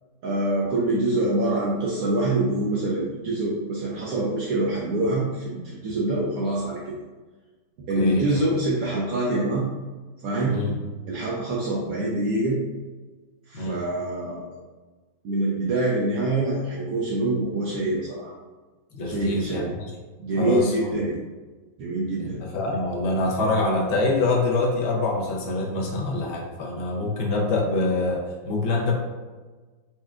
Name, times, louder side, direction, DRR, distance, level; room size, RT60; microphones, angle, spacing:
voice 1, 0.2-6.9 7.9-9.7 10.2-10.6 11.1-12.6 13.5-14.6 15.2-18.3 19.1-19.7 20.2-21.2 21.8-22.4, right 2 dB, 70° right, -5 dB, 1.0 m, -25 dB
voice 2, 7.9-8.4 10.5-10.7 13.5-13.8 18.9-19.9 20.4-20.9 22.2-29.0, left 2 dB, 55° left, -2 dB, 0.7 m, -25 dB
4.4 x 2.2 x 2.4 m, 1.3 s
omnidirectional pair, 1.6 m